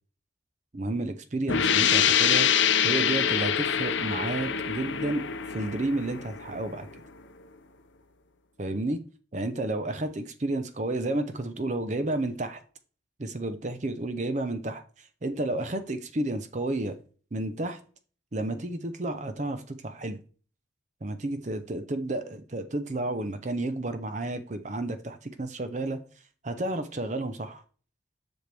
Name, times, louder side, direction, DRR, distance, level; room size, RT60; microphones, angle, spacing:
voice 1, 0.7-2.5 2.8-5.2 5.5-6.9 8.6-9.0 9.3-12.6 13.2-14.8 15.2-17.0 17.3-17.8 18.3-20.2 21.0-26.0 26.4-27.6, right 2 dB, 40° right, 9 dB, 0.6 m, -31 dB
sound 1, 1.5-7.0, left 8 dB, 85° left, 0.7 m, -25 dB
7.8 x 6.1 x 3.4 m, 0.40 s
head